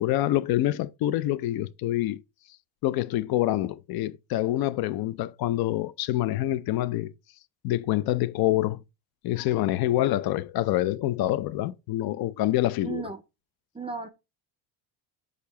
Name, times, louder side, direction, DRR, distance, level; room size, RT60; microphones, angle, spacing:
voice 1, 0.0-2.2 2.8-7.1 7.6-8.8 9.2-13.0, left 14 dB, 60° left, 0.6 m, -26 dB
voice 2, 12.8-13.2 13.7-14.1, right 5 dB, 15° right, 0.5 m, -34 dB
6.6 x 2.8 x 5.7 m
cardioid pair, 165°, 42 cm